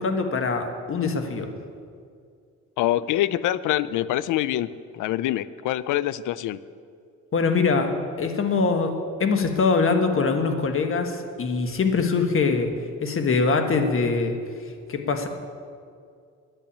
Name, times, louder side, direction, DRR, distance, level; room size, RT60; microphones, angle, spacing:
voice 1, 0.0-1.5 7.3-12.7 13.0-14.4 14.6-15.3, left 4 dB, 45° left, 6 dB, 1.5 m, -23 dB
voice 2, 2.8-6.6, left 13 dB, 80° left, 17 dB, 0.5 m, -25 dB
10.5 x 8.9 x 8.5 m, 2.3 s
cardioid pair, 90°, 30 cm